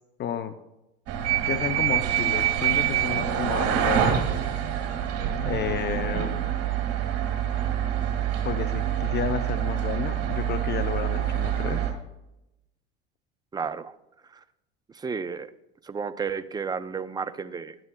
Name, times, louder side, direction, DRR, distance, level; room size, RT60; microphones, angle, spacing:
voice 1, 0.2-0.5 1.5-4.2 5.4-6.4 8.4-11.8, left 9 dB, 35° left, 10 dB, 0.6 m, -31 dB
sound 1, 1.1-11.9, right 10 dB, 50° right, 1.8 m, -26 dB
voice 2, 13.5-13.9 14.2-14.4 14.9-15.5 15.8-17.8, right 5 dB, 15° right, 11 dB, 0.4 m, -32 dB
12.0 x 8.8 x 2.2 m, 0.90 s
hypercardioid pair, 85°, 32 cm